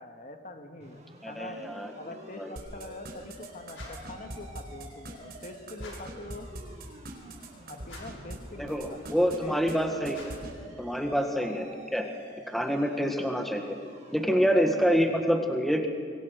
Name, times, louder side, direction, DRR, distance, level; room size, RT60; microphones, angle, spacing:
voice 1, 0.0-1.6 2.0-6.5 7.7-9.5 11.0-11.2 14.3-14.5, left 2 dB, 45° left, 5 dB, 1.8 m, -44 dB
sound 1, 0.8-15.2, right 1 dB, 35° right, 5.6 m, -49 dB
voice 2, 1.2-1.9 2.4-2.5 8.6-10.2 10.8-12.0 12.5-13.8 14.1-15.9, equal, ahead, 4 dB, 1.5 m, -27 dB
sound 2, 2.6-8.4 8.7-9.4 9.7-9.8 10.0-10.5, right 1 dB, 55° right, 4.1 m, -41 dB
sound 3, 3.7-4.2 5.7-6.2 7.8-8.3 10.1-10.6, left 2 dB, 90° left, 5.8 m, -48 dB
26.0 x 22.5 x 6.4 m, 2.1 s
head